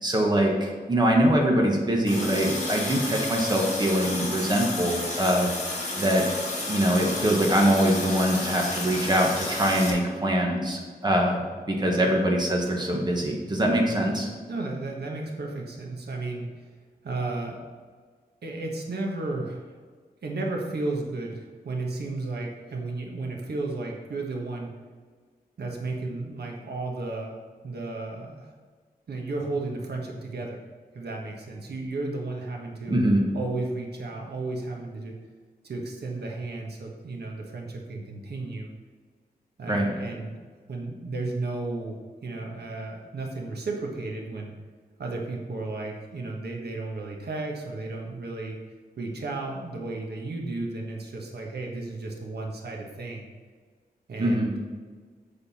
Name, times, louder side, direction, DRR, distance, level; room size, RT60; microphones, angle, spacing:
voice 1, 0.0-5.5 6.0-6.2 6.7-11.4 11.7-14.3 32.9-33.2 39.7-39.9 54.2-54.5, right 1 dB, 25° right, -1 dB, 1.4 m, -23 dB
Water tap faucet, 2.1-9.9, left 2 dB, 45° left, 2.1 m, -32 dB
voice 2, 14.5-16.5 17.0-17.6 18.4-19.7 20.2-24.7 25.6-27.4 27.6-28.5 29.1-30.6 30.9-33.0 33.3-35.2 35.6-38.7 39.6-40.3 40.7-44.5 45.0-48.6 49.0-53.3 54.1-54.7, right 2 dB, 90° right, 0 dB, 1.4 m, -33 dB
7.6 x 6.8 x 4.3 m, 1.5 s
wide cardioid pair, 145°, 16 cm